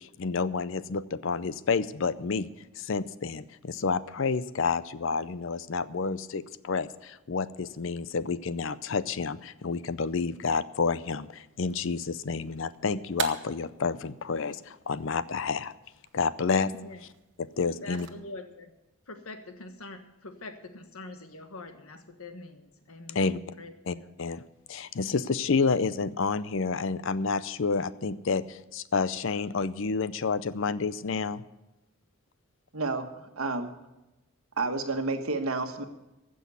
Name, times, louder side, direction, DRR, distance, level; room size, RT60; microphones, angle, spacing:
voice 1, 0.0-2.5 2.8-15.7 16.1-16.7 17.4-18.1 23.1-23.4 23.9-24.4 24.7-31.4, left 4 dB, 60° left, 16 dB, 0.5 m, -29 dB
sound 1, 11.7-18.1, right 7 dB, 55° right, 1.1 m, -43 dB
voice 2, 16.6-17.0 17.7-18.7 19.1-23.3 23.6-24.1, left 2 dB, 80° left, 8 dB, 1.4 m, -44 dB
voice 3, 32.7-33.1 33.4-33.7 34.6-35.8, right 3 dB, 80° right, 6 dB, 1.4 m, -30 dB
15.5 x 6.3 x 9.5 m, 0.99 s
head